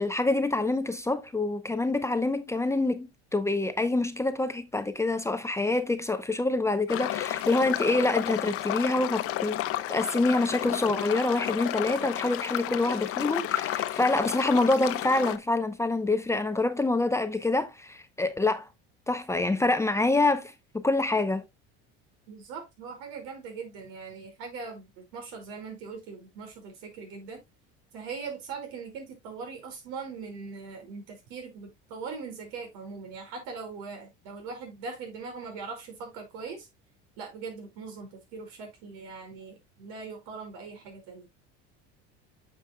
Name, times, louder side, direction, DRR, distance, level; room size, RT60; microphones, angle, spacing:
voice 1, 0.0-9.6 9.9-18.7 19.1-21.4, left 2 dB, 10° left, 0.7 m, -26 dB
sound 1, 6.9-15.4, left 14 dB, 50° left, 0.8 m, -32 dB
voice 2, 22.3-27.4 27.9-36.7 37.2-41.3, right 5 dB, 80° right, 5.3 m, -41 dB
9.6 x 6.9 x 2.2 m
cardioid pair, 135°, 29 cm